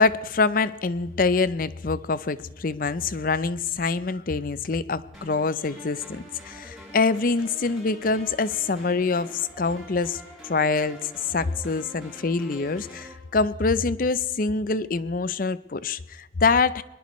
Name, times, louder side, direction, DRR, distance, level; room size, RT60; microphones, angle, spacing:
voice 1, 0.0-16.8, left 4 dB, 50° left, 0.6 m, -25 dB
sound 1, 5.1-13.1, equal, ahead, 6.2 m, -46 dB
22.5 x 20.0 x 3.1 m
head